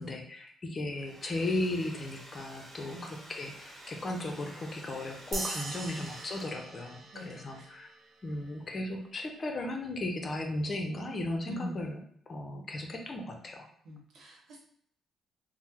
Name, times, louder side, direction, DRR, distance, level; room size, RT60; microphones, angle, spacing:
voice 1, 0.0-7.9 8.2-12.0 12.3-13.7, left 1 dB, 40° left, 3 dB, 0.6 m, -36 dB
Domestic sounds home sounds, 0.8-6.8, right 1 dB, 20° right, 0.9 m, -51 dB
sound 1, 5.3-8.1, right 2 dB, 50° right, 0.6 m, -40 dB
voice 2, 7.1-7.7 11.5-11.8 13.8-14.6, left 1 dB, 75° right, -1 dB, 1.0 m, -43 dB
3.5 x 2.1 x 2.9 m, 0.63 s
cardioid pair, 90°, 0 cm